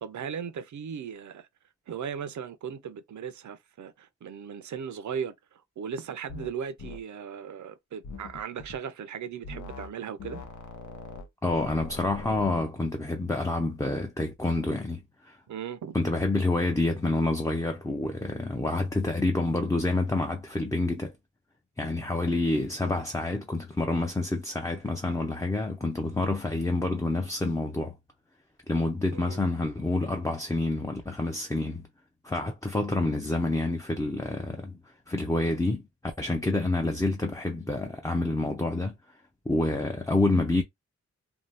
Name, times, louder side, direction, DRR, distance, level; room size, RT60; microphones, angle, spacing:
voice 1, 0.0-1.5 1.9-5.3 5.8-10.4 15.5-16.0 29.1-29.4, right 7 dB, 75° right, 0.6 m, -37 dB
sound 1, 6.3-6.5 6.8-7.0 8.0-8.8 9.4-9.9 10.2-12.7, left 3 dB, 80° left, 0.7 m, -42 dB
voice 2, 11.4-15.4 15.9-21.1 21.8-28.0 28.7-31.9 32.2-34.8 35.1-39.0 39.5-40.6, left 2 dB, 10° left, 0.5 m, -28 dB
2.7 x 2.2 x 3.3 m
wide cardioid pair, 100°, 29 cm